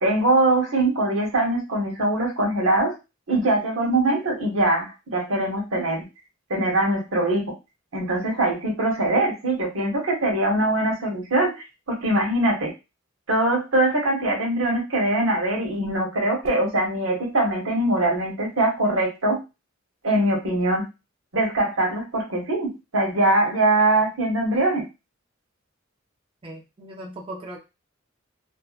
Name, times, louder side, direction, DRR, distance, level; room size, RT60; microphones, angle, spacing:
voice 1, 0.0-2.9 3.3-6.1 6.5-7.4 7.9-11.5 11.9-12.7 13.3-19.4 20.0-20.8 21.3-24.8, right 2 dB, 85° right, 0 dB, 1.0 m, -22 dB
voice 2, 26.4-27.6, right 1 dB, 25° right, 0 dB, 0.4 m, -38 dB
2.6 x 2.1 x 2.4 m, 0.26 s
head